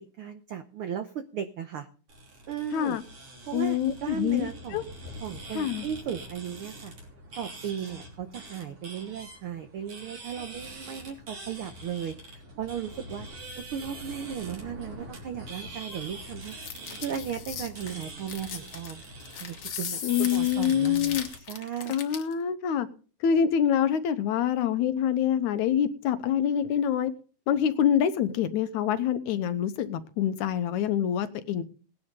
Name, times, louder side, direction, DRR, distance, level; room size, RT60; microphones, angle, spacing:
voice 1, 0.0-1.9 2.5-3.0 3.5-4.9 5.2-6.9 7.4-13.3 13.6-16.5 17.0-19.0 19.4-21.9, right 8 dB, 80° right, 9 dB, 1.2 m, -36 dB
sound 1, 2.1-21.4, right 1 dB, 45° right, 4.3 m, -44 dB
voice 2, 2.7-3.0 3.5-4.8 5.5-5.9 20.0-21.3 21.9-22.9 23.2-27.1 27.5-31.6, left 9 dB, 75° left, 11 dB, 2.2 m, -26 dB
sound 2, 16.4-22.3, left 7 dB, 50° left, 1.8 m, -38 dB
18.5 x 10.5 x 3.8 m, 0.38 s
omnidirectional pair, 3.6 m